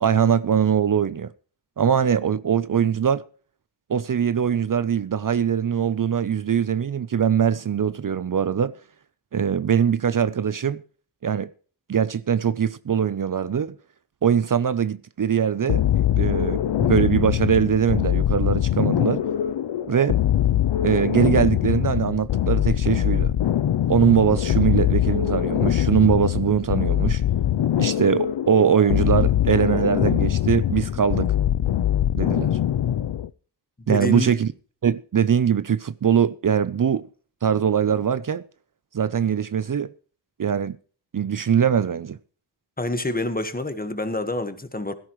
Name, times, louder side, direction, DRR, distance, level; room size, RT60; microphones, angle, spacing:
voice 1, 0.0-1.3 1.8-3.2 3.9-8.7 9.3-10.8 11.2-11.5 11.9-13.8 14.2-15.8 16.2-19.2 19.9-20.2 20.8-23.3 23.9-27.2 27.8-31.3 32.1-32.5 33.9-34.5 34.8-37.1 37.4-38.4 38.9-39.9 40.4-40.8 41.1-42.2, right 8 dB, 50° right, 0.6 m, -22 dB
sound 1, 15.7-33.3, left 11 dB, 90° left, 0.6 m, -22 dB
voice 2, 33.8-34.3 42.8-44.9, left 2 dB, 20° left, 1.4 m, -27 dB
16.5 x 13.5 x 3.1 m
wide cardioid pair, 105°, 42 cm